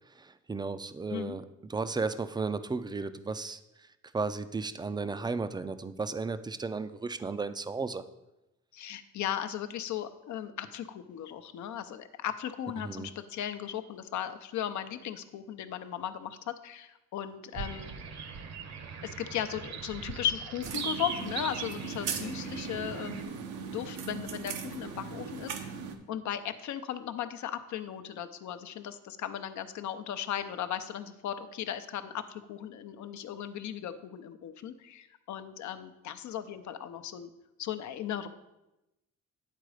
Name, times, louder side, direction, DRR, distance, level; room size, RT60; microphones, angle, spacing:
voice 1, 0.2-1.4 1.7-3.6 4.1-8.0 12.8-13.1, right 4 dB, 15° right, 12 dB, 0.4 m, -34 dB
voice 2, 8.7-17.9 19.0-23.4 23.7-25.7 26.1-37.3 37.6-38.3, left 10 dB, 70° left, 10 dB, 0.7 m, -37 dB
sound 1, 17.5-23.2, right 5 dB, 60° right, 0.9 m, -40 dB
sound 2, 20.6-26.0, right 6 dB, 90° right, 0.8 m, -39 dB
9.3 x 3.9 x 4.8 m, 0.95 s
cardioid pair, 90°, 30 cm